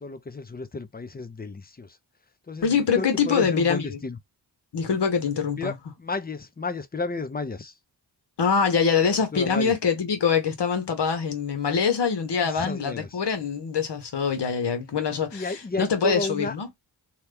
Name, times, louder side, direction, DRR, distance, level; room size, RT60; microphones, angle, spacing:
voice 1, 0.0-2.0 2.5-2.7 3.0-4.2 5.6-7.7 9.3-9.7 12.4-13.1 15.3-16.5, left 3 dB, 20° left, 0.6 m, -32 dB
voice 2, 2.6-4.0 4.7-5.7 8.4-16.7, left 6 dB, 65° left, 1.1 m, -24 dB
2.9 x 2.3 x 3.3 m
cardioid pair, 60°, 44 cm